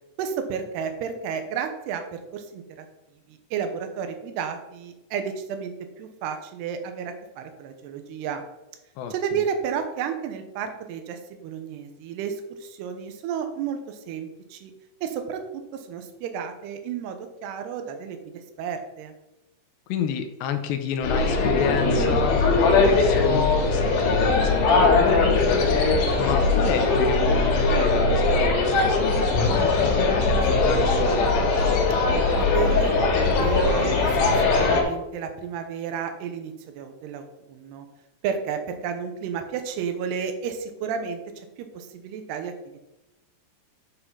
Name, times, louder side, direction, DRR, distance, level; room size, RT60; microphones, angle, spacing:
voice 1, 0.2-2.9 3.3-8.4 9.1-14.7 15.0-15.4 15.7-18.3 18.6-19.1 32.4-37.9 38.2-42.8, right 7 dB, 75° right, 7 dB, 3.0 m, -32 dB
voice 2, 9.0-9.4 19.9-25.9 26.2-31.9, left 7 dB, 90° left, 7 dB, 3.0 m, -30 dB
sound 1, 21.0-34.8, left 3 dB, 75° left, 3.9 m, -20 dB
10.0 x 4.9 x 5.6 m, 0.96 s
omnidirectional pair, 5.0 m